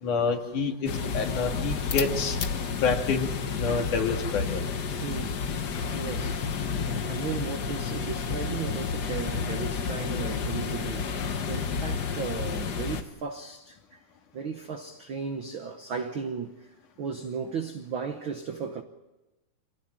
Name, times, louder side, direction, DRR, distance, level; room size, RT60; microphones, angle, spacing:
voice 1, 0.0-2.4 2.8-3.3 3.6-4.7, left 4 dB, 65° left, 3.6 m, -28 dB
sound 1, 0.9-13.0, left 5 dB, 90° left, 0.9 m, -31 dB
voice 2, 5.0-5.4 5.9-6.5 6.7-14.0 14.3-16.7 17.0-18.8, right 6 dB, 65° right, 1.2 m, -35 dB
26.0 x 18.0 x 8.9 m
omnidirectional pair, 3.9 m